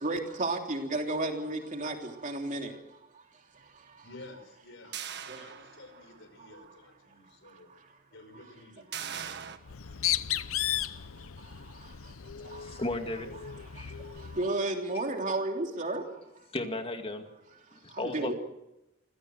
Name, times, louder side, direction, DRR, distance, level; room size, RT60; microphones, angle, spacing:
voice 1, 0.0-1.9 2.2-2.7 14.4-16.0 18.0-18.3, right 2 dB, 40° right, 3 dB, 3.2 m, -31 dB
voice 2, 4.0-7.7 8.1-9.2, left 2 dB, 65° left, 8 dB, 5.5 m, -52 dB
sound 1, 4.9-6.2 6.6-6.7 8.9-9.6, right 8 dB, 55° right, 1.6 m, -40 dB
Bird, 9.6-14.5, left 12 dB, 90° left, 0.8 m, -35 dB
voice 3, 12.4-13.3 13.7-14.0 16.5-17.2 17.7-18.3, left 2 dB, 30° left, 5 dB, 2.3 m, -35 dB
27.5 x 16.5 x 7.9 m, 0.93 s
head